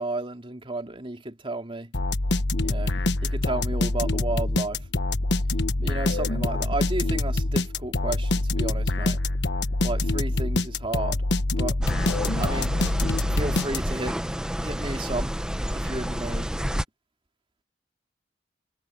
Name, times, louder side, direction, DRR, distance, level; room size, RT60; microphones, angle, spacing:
voice 1, 0.0-1.9 2.6-2.9 3.2-4.8 5.8-9.2 9.8-11.2 11.6-11.8 12.4-12.7 13.3-14.2 14.6-15.3 15.7-16.5, right 2 dB, 30° right, 3.0 m, -32 dB
sound 1, 1.9-14.1, left 2 dB, 70° left, 1.2 m, -25 dB
sound 2, 11.8-16.8, equal, 5° right, 1.2 m, -29 dB
head